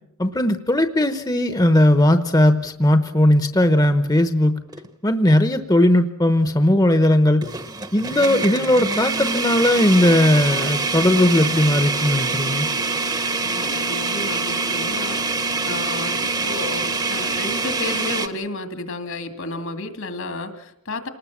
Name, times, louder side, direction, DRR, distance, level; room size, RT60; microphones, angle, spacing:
voice 1, 0.2-4.6 5.0-7.5 7.9-12.7, left 1 dB, 15° left, 9 dB, 0.9 m, -18 dB
sound 1, 4.7-4.9 5.4-5.5 7.4-18.3, right 3 dB, 20° right, 1.0 m, -25 dB
voice 2, 13.4-21.1, left 2 dB, 70° left, 7 dB, 2.4 m, -32 dB
28.5 x 19.5 x 7.3 m, 0.81 s
head